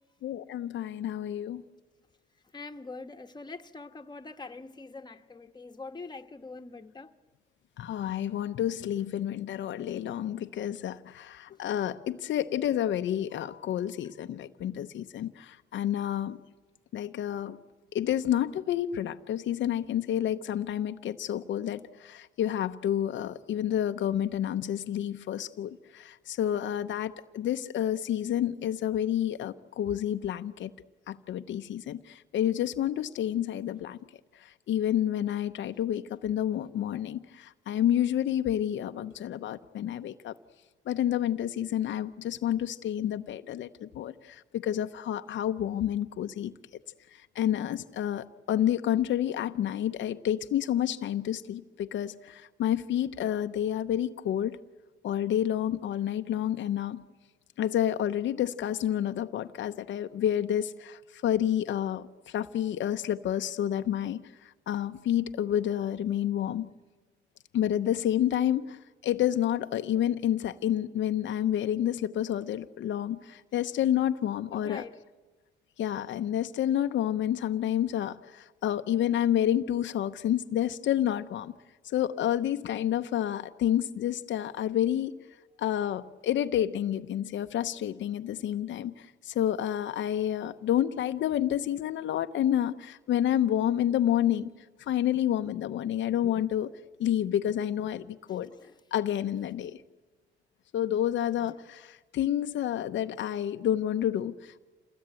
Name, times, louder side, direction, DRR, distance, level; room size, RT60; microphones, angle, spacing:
voice 1, 0.2-1.6 7.8-16.4 16.9-17.6 17.9-30.7 31.1-34.0 34.4-40.3 40.9-46.5 47.1-54.6 55.0-57.0 57.6-66.7 67.5-74.8 75.8-81.5 81.8-85.1 85.6-94.5 94.8-96.7 97.0-98.5 98.9-99.8 100.7-104.6, left 11 dB, 70° left, 0.8 m, -29 dB
voice 2, 2.5-7.1 11.5-11.6 74.5-75.0 98.5-98.8, left 3 dB, 20° left, 1.5 m, -44 dB
28.0 x 20.0 x 9.0 m
cardioid pair, 90°, 20 cm